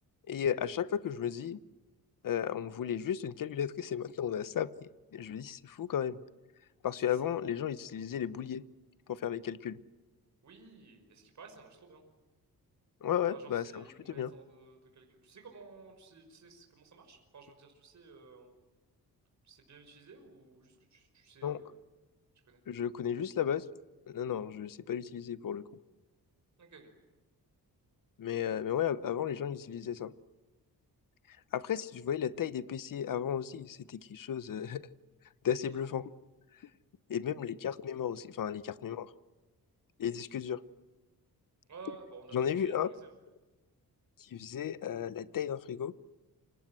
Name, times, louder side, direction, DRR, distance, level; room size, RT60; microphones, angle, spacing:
voice 1, 0.3-1.6 2.2-6.2 6.8-8.6 9.1-9.8 13.0-14.3 21.4-21.6 22.7-23.7 24.1-25.6 28.2-30.1 31.5-34.8 35.4-36.1 37.1-39.1 40.0-40.6 42.3-42.9 44.3-45.9, left 9 dB, 60° left, 16 dB, 1.1 m, -34 dB
voice 2, 6.9-7.4 10.4-12.0 13.3-18.5 19.4-21.8 22.5-22.6 26.6-26.9 41.7-43.1, right 4 dB, 50° right, 4 dB, 5.6 m, -54 dB
29.5 x 26.0 x 7.7 m, 1.2 s
wide cardioid pair, 130°, 37 cm